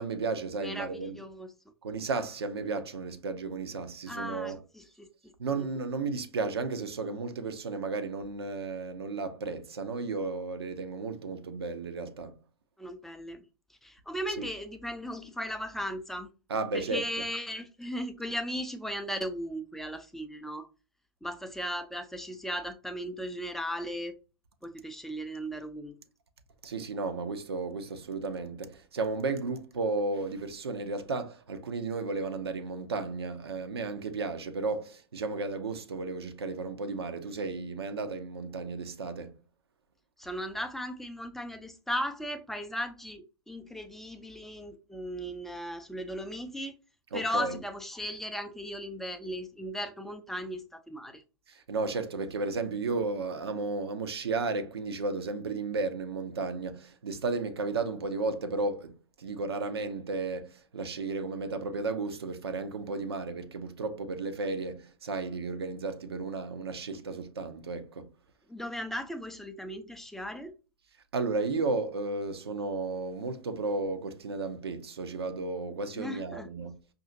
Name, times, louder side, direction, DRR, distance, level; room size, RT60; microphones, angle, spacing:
voice 1, 0.0-1.2 1.8-4.6 5.4-12.4 14.4-14.5 16.5-17.1 26.6-39.3 47.1-47.6 51.5-68.1 71.1-76.8, right 3 dB, 70° right, 0.7 m, -33 dB
voice 2, 0.6-1.5 4.1-5.7 12.8-13.4 13.8-16.3 16.7-20.7 21.2-24.1 24.6-26.0 40.2-46.7 47.1-51.2 68.5-70.5 76.0-76.5, equal, ahead, 0.4 m, -37 dB
5.5 x 2.6 x 2.5 m
figure-of-eight pair, 105°, 14 cm